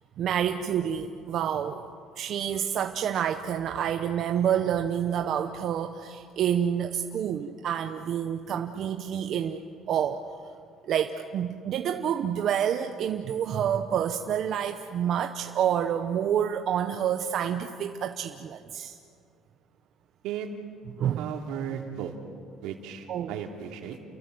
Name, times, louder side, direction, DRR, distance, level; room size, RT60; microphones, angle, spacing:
voice 1, 0.2-1.8 2.2-9.6 9.9-10.2 10.8-19.0 21.0-21.3 23.1-23.4, right 9 dB, 45° right, 6 dB, 0.9 m, -28 dB
voice 2, 21.2-22.1 22.6-24.0, right 9 dB, 85° right, 3 dB, 2.9 m, -35 dB
29.5 x 23.0 x 7.8 m, 2.3 s
cardioid pair, 170°, 0 cm